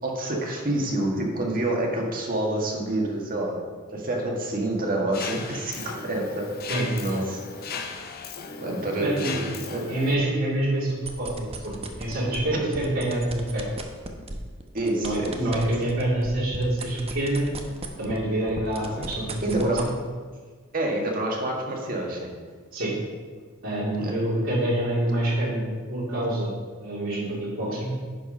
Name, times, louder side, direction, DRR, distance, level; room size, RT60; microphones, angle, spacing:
voice 1, 0.0-3.5 3.9-6.5 7.0-7.8 8.6-9.9 12.5-12.6 14.7-15.7 19.0-19.1 19.4-19.8 20.7-22.3 24.0-24.1, right 1 dB, 45° right, -1 dB, 1.6 m, -28 dB
Mechanisms, 5.1-10.1, left 5 dB, 50° left, 0.6 m, -36 dB
voice 2, 9.0-9.3 9.9-13.7 15.0-17.5 17.8-19.9 22.7-22.9 23.6-26.5 26.8-27.9, right 1 dB, 75° right, -8 dB, 2.6 m, -26 dB
sound 1, 10.9-12.4 12.7-18.2 18.5-19.9, right 3 dB, 30° right, 0.8 m, -36 dB
10.0 x 4.7 x 5.3 m, 1.5 s
head